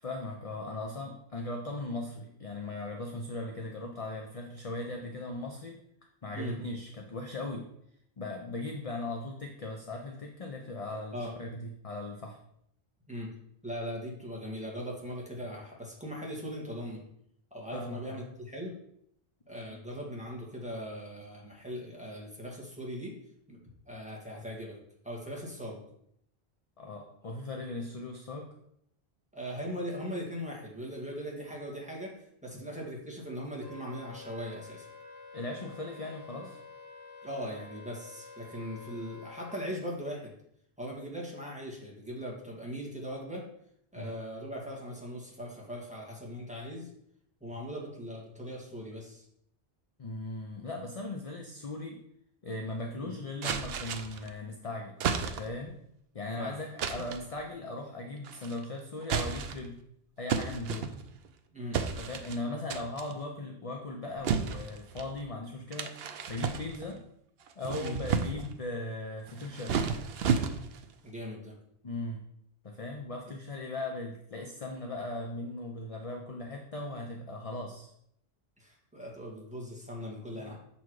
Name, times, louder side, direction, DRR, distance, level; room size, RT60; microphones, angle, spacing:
voice 1, 0.0-5.8 6.2-7.7 8.2-12.4 17.7-18.2 26.8-28.5 35.3-36.6 44.0-44.1 50.0-52.0 52.4-55.8 56.1-59.8 60.2-60.9 62.0-67.0 67.6-69.8 71.8-72.2 72.6-77.9 80.3-80.5, left 2 dB, 40° left, 2 dB, 0.7 m, -38 dB
voice 2, 13.6-17.0 17.5-18.7 19.5-23.1 23.5-23.6 23.9-24.8 25.0-25.8 29.3-32.1 32.4-34.9 37.2-40.3 40.8-43.4 43.9-46.9 47.4-49.2 53.0-53.1 56.4-56.6 61.5-61.8 67.8-68.0 71.0-71.5 78.6-80.6, equal, 5° right, -4 dB, 1.8 m, -39 dB
Wind instrument woodwind instrument, 33.6-39.6, left 3 dB, 60° left, 2.0 m, -49 dB
sound 1, 53.4-54.3 55.0-55.7 56.8-57.3 58.2-58.6 59.0-59.7 60.3-61.3 61.7-62.4 62.7-63.1 64.2-65.1 65.7-67.0 67.5-68.6 69.3-70.9, right 6 dB, 75° right, 0.9 m, -32 dB
7.0 x 4.3 x 4.7 m, 0.73 s
omnidirectional pair, 1.0 m